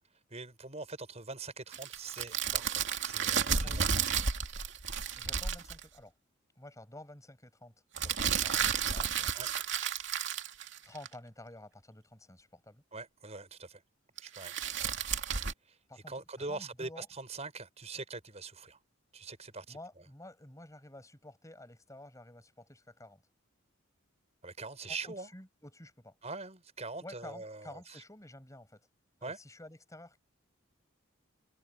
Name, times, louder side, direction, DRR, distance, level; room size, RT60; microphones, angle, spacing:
voice 1, 0.3-3.9 9.3-9.7 12.9-13.8 14.2-14.5 15.6-15.8 16.1-18.8 19.1-19.8 24.4-25.3 26.2-28.0 29.2-29.4, right 3 dB, 30° right, 6.4 m, -43 dB
sound 1, 1.7-5.8 8.0-11.1 14.2-15.5, right 7 dB, 60° right, 2.8 m, -32 dB
voice 2, 3.5-4.0 5.2-6.1 6.6-9.3 10.8-12.8 15.9-16.1 16.4-17.1 19.7-23.2 25.0-26.2 27.0-28.9 29.2-30.2, left 1 dB, 15° left, 6.5 m, -51 dB
head